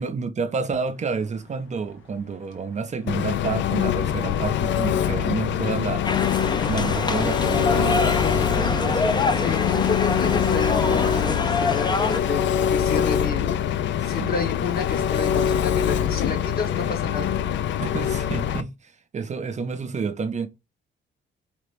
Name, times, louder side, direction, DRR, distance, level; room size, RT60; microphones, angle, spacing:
voice 1, 0.0-6.1 6.7-9.2 12.3-12.5 14.0-14.4 15.0-15.1 17.8-20.5, right 5 dB, 35° right, 0.5 m, -30 dB
sound 1, 0.9-6.2, left 4 dB, 85° left, 1.2 m, -50 dB
Engine, 3.1-18.6, left 9 dB, 65° left, 0.4 m, -24 dB
sound 2, 6.0-12.2, left 3 dB, 20° left, 0.6 m, -25 dB
voice 2, 9.4-13.5 14.0-17.3, left 5 dB, 50° left, 1.4 m, -30 dB
5.0 x 2.8 x 3.4 m
cardioid pair, 90°, 20 cm